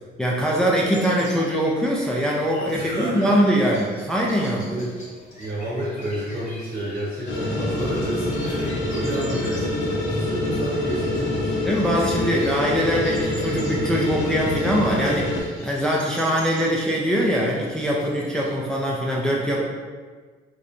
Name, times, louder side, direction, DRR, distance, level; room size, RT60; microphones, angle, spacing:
voice 1, 0.2-4.8 11.6-19.6, equal, 5° left, -3 dB, 0.3 m, -22 dB
sound 1, 0.8-18.5, left 1 dB, 35° left, 0.9 m, -44 dB
voice 2, 2.7-3.4 4.6-4.9 5.4-11.6, right 1 dB, 60° right, -7 dB, 0.9 m, -30 dB
sound 2, 7.3-15.4, left 1 dB, 65° left, 0.8 m, -26 dB
2.9 x 2.1 x 2.4 m, 1.5 s
cardioid pair, 90°, 20 cm